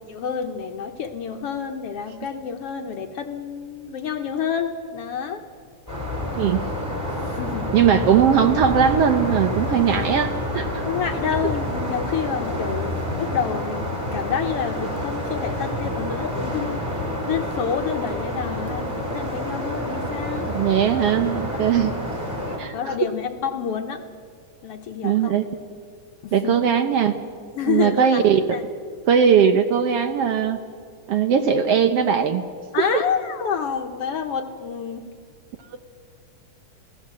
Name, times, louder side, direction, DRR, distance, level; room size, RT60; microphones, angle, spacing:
voice 1, 0.1-5.4 7.2-7.7 10.8-16.8 17.2-20.5 22.7-24.0 24.6-25.3 26.2-26.6 27.5-28.2 28.5-28.6 32.7-35.1, left 7 dB, 65° left, 5 dB, 1.6 m, -28 dB
sound 1, 5.9-22.6, left 1 dB, 5° right, 4.6 m, -28 dB
voice 2, 7.7-10.8 20.5-22.0 22.6-23.0 25.0-25.4 26.3-27.1 27.7-28.4 29.1-30.6 31.1-32.4 32.8-33.0, right 8 dB, 65° right, 8 dB, 1.6 m, -19 dB
27.5 x 18.0 x 7.6 m, 2.1 s
omnidirectional pair, 3.5 m